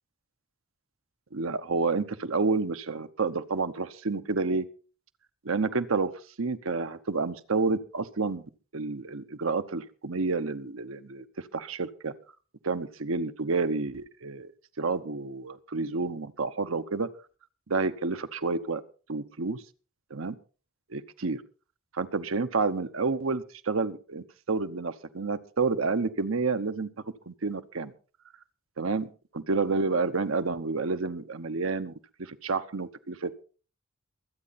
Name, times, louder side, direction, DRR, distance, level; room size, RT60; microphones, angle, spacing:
voice 1, 1.3-4.7 5.4-6.1 6.4-8.4 8.7-11.3 11.5-12.1 12.6-14.5 14.8-17.1 17.7-18.8 19.1-19.6 20.1-20.3 20.9-21.4 21.9-26.9 27.3-27.9 28.8-33.3, right 4 dB, 80° right, 10 dB, 0.9 m, -29 dB
23.0 x 8.7 x 4.1 m, 0.38 s
head